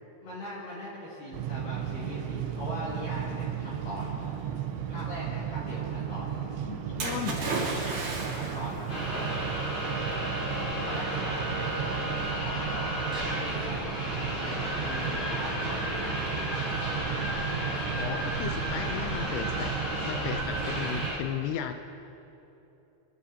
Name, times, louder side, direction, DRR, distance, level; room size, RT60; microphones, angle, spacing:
voice 1, 0.2-4.3 4.9-6.3 8.3-8.9 10.8-13.9 14.3-16.5, left 1 dB, 55° left, -8 dB, 3.2 m, -40 dB
sound 1, 1.3-21.1, right 8 dB, 80° right, 3.1 m, -35 dB
voice 2, 6.7-7.4 18.0-19.7 20.1-21.7, left 9 dB, 90° left, 6 dB, 2.3 m, -35 dB
Splash splatter, 7.0-8.8 9.7-9.8, right 2 dB, 50° right, 3.6 m, -32 dB
sound 2, 8.9-21.2, equal, 35° left, 3.7 m, -33 dB
29.0 x 11.5 x 2.8 m, 2.9 s
omnidirectional pair, 5.3 m